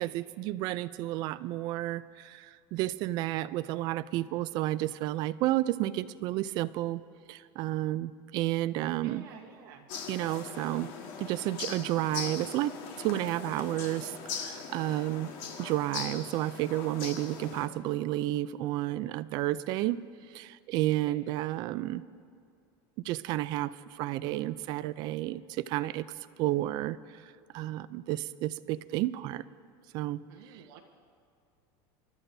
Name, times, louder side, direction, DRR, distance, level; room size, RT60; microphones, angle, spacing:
voice 1, 0.0-7.0 7.3-9.3 10.1-10.9 11.2-15.3 15.6-20.0 20.3-22.0 23.0-26.1 26.4-27.0 27.5-29.4 29.9-30.2, right 15 dB, 40° right, 16 dB, 0.4 m, -31 dB
voice 2, 9.0-9.9 21.0-21.2 30.3-30.8, right 8 dB, 75° right, 0 dB, 1.0 m, -50 dB
sound 1, 9.9-17.7, left 6 dB, 50° left, 1.5 m, -40 dB
29.0 x 13.0 x 2.7 m, 2.3 s
cardioid pair, 170°, 11 cm